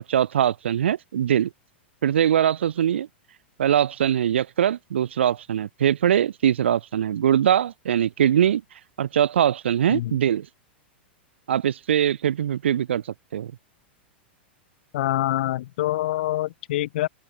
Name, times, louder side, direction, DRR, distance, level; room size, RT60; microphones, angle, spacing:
voice 1, 0.0-1.5 2.0-3.1 3.6-8.6 9.0-10.5 11.5-13.0 13.3-13.5, right 10 dB, 80° right, 7.0 m, -22 dB
voice 2, 14.9-17.1, left 15 dB, 65° left, 7.8 m, -25 dB
open air
hypercardioid pair, 110°, 6 cm